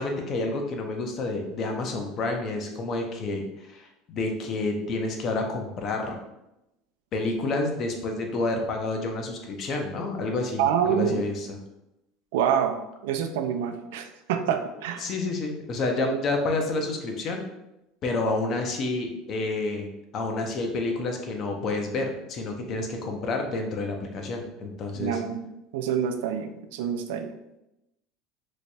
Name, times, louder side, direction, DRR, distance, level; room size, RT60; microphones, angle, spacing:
voice 1, 0.0-6.2 7.1-11.6 15.0-17.4 18.0-19.9 20.1-25.2, left 2 dB, 40° left, 3 dB, 0.6 m, -29 dB
voice 2, 10.6-11.2 12.3-12.8 13.0-15.1 16.1-16.2 25.0-25.4 25.7-27.3, right 8 dB, 85° right, 7 dB, 0.4 m, -26 dB
3.1 x 2.2 x 4.0 m, 0.90 s
supercardioid pair, 140°, 0 cm